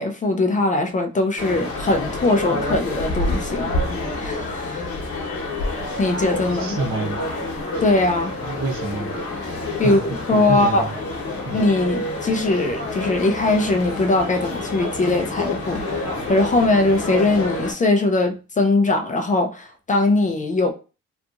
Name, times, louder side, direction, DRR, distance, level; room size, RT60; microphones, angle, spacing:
voice 1, 0.0-3.7 4.2-4.9 6.0-6.8 7.8-8.3 9.8-10.9 11.5-20.7, left 2 dB, 25° left, 0.4 m, -21 dB
sound 1, 1.4-17.7, left 2 dB, 50° left, 1.0 m, -28 dB
voice 2, 6.5-7.2 7.5-7.8 8.4-9.1 9.8-10.9 11.4-11.6, right 3 dB, 65° right, 0.9 m, -28 dB
2.8 x 2.4 x 2.4 m
cardioid pair, 90°, 30 cm